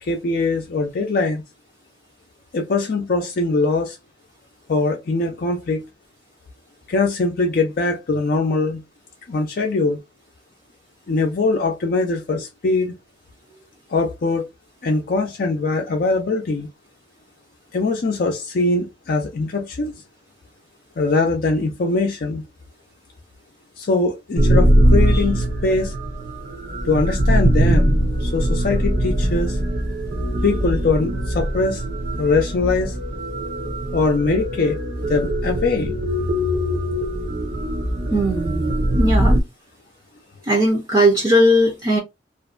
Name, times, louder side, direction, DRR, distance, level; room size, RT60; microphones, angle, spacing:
voice 1, 0.0-1.4 2.5-4.0 4.7-5.8 6.9-8.8 9.3-10.0 11.1-12.9 13.9-14.5 14.8-16.7 17.7-19.9 21.0-22.4 23.8-25.9 26.9-29.6 30.4-31.8 32.2-33.0 33.9-34.8 35.1-36.0, left 3 dB, 55° left, 0.5 m, -22 dB
sound 1, 24.4-39.4, equal, 55° right, 0.8 m, -21 dB
voice 2, 38.1-38.7 39.0-39.4 40.5-42.0, equal, 25° right, 0.6 m, -18 dB
2.4 x 2.1 x 2.4 m
head